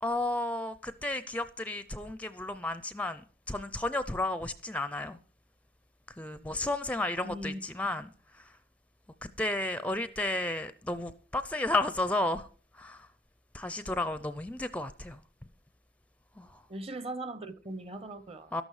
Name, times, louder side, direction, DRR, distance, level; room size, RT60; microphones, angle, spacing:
voice 1, 0.0-3.2 3.5-5.2 6.2-8.1 9.4-12.5 12.8-13.1 13.5-15.2 16.4-16.5 18.5-18.6, left 2 dB, 5° left, 0.5 m, -32 dB
voice 2, 7.2-7.6 16.7-18.5, right 1 dB, 30° right, 1.0 m, -39 dB
13.0 x 11.5 x 4.8 m
head